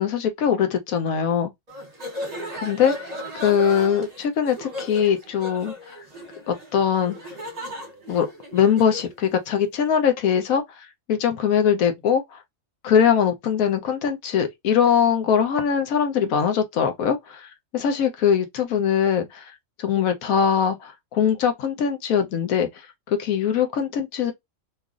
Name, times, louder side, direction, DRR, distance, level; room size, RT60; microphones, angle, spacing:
voice 1, 0.0-1.5 2.6-2.9 3.4-5.7 6.5-7.2 8.1-8.3 8.5-12.4 12.8-19.5 19.8-22.7 23.1-24.3, left 8 dB, 80° left, 1.1 m, -22 dB
sound 1, 1.7-9.1, left 1 dB, 35° right, 0.9 m, -36 dB
3.0 x 2.5 x 2.4 m
omnidirectional pair, 1.5 m